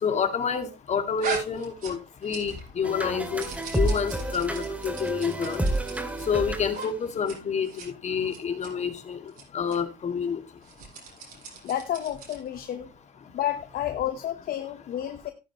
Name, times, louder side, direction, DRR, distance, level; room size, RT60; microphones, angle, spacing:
voice 1, 0.0-3.5 3.7-5.6 6.3-9.2 9.5-10.4, left 6 dB, 40° left, 7 dB, 2.1 m, -28 dB
sound 1, 1.2-2.7 3.0-6.3 6.7-6.9 7.1-7.4 7.6-7.9 8.3-8.7 9.3-9.4 9.7-9.8 10.6-12.5, right 4 dB, 55° right, 6.8 m, -39 dB
sound 2, 2.8-7.0, right 1 dB, 10° right, 2.3 m, -30 dB
voice 2, 11.6-12.9 13.3-15.3, left 11 dB, 60° left, 8 dB, 1.0 m, -30 dB
14.0 x 9.8 x 3.0 m, 0.27 s
cardioid pair, 110°, 17 cm